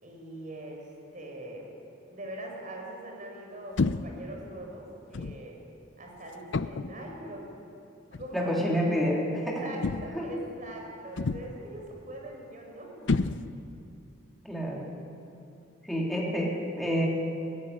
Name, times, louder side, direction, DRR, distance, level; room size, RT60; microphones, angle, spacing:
voice 1, 0.0-1.7 2.1-5.6 6.0-7.5 8.1-8.6 9.4-13.1, right 1 dB, 40° right, 0 dB, 4.7 m, -42 dB
sound 1, 3.8-4.3 5.1-5.5 6.5-7.0 8.1-8.3 9.8-10.3 11.2-11.7 13.1-13.8, left 3 dB, 65° left, 0.5 m, -30 dB
voice 2, 8.3-9.4 10.1-10.3 14.4-14.9 15.8-17.1, equal, ahead, -3 dB, 3.3 m, -28 dB
18.0 x 15.0 x 9.9 m, 2.6 s
head